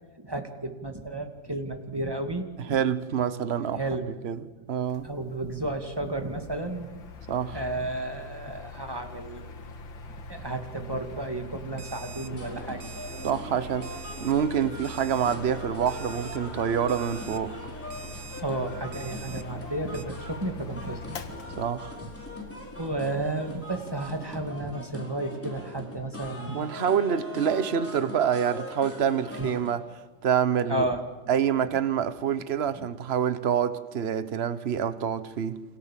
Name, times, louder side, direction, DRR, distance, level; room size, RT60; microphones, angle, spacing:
voice 1, 0.2-2.8 3.7-4.0 5.0-7.0 7.5-9.5 10.3-12.9 18.4-21.6 22.0-22.1 22.8-26.9 29.4-29.5 30.7-31.0, right 2 dB, 10° right, 2.3 m, -32 dB
voice 2, 2.7-5.1 7.3-7.6 13.2-17.6 21.6-22.0 26.5-29.8 30.2-30.9 31.3-35.6, right 8 dB, 40° right, 1.1 m, -27 dB
Mechanical fan, 4.8-24.5, left 2 dB, 85° left, 2.5 m, -43 dB
Alarm, 11.8-12.3 12.8-13.3 13.8-14.3 14.8-15.4 15.9-16.4 16.9-17.4 17.9-18.4 18.9-19.4 19.9-20.1, right 8 dB, 70° right, 1.7 m, -45 dB
sound 1, 12.3-29.8, left 1 dB, 5° left, 4.5 m, -41 dB
29.0 x 26.5 x 7.5 m
omnidirectional pair, 2.1 m